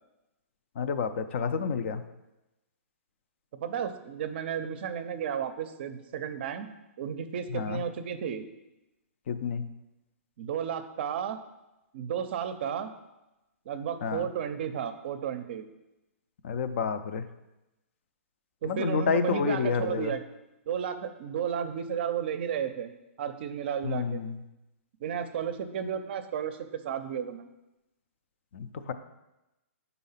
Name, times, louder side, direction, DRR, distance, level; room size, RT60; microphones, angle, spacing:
voice 1, 0.8-2.0 7.5-7.8 9.3-9.6 14.0-14.2 16.4-17.3 18.7-20.1 23.8-24.4 28.5-28.9, left 6 dB, 55° left, 10 dB, 0.5 m, -29 dB
voice 2, 3.5-6.7 7.0-8.5 10.4-11.4 11.9-12.9 13.7-15.7 18.6-20.2 20.7-22.9 23.2-24.2 25.0-27.5, right 8 dB, 45° right, 10 dB, 0.5 m, -33 dB
5.6 x 4.1 x 5.6 m, 0.96 s
hypercardioid pair, 160°, 8 cm